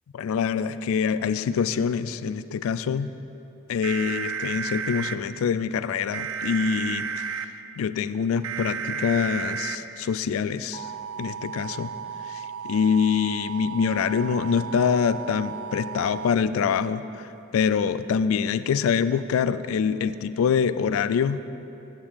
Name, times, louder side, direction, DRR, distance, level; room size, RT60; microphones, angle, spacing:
voice 1, 0.1-3.1 3.7-7.3 7.8-10.9 11.2-11.9 12.3-21.4, left 6 dB, 80° left, 14 dB, 0.3 m, -25 dB
sound 1, 3.8-5.2 6.1-7.5 8.4-9.8 10.7-16.3, right 6 dB, 75° right, 0.4 m, -33 dB
8.6 x 7.4 x 4.8 m, 2.9 s
head